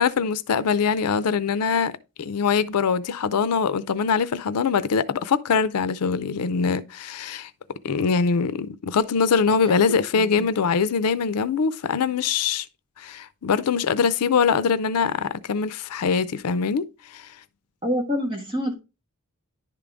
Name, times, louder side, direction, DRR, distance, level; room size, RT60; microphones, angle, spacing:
voice 1, 0.0-1.9 2.2-7.5 7.8-12.7 13.0-16.8 17.1-17.2, left 5 dB, 90° left, 0.5 m, -23 dB
voice 2, 9.7-10.3 17.8-18.7, equal, 25° right, 1.4 m, -27 dB
10.5 x 3.8 x 3.4 m
head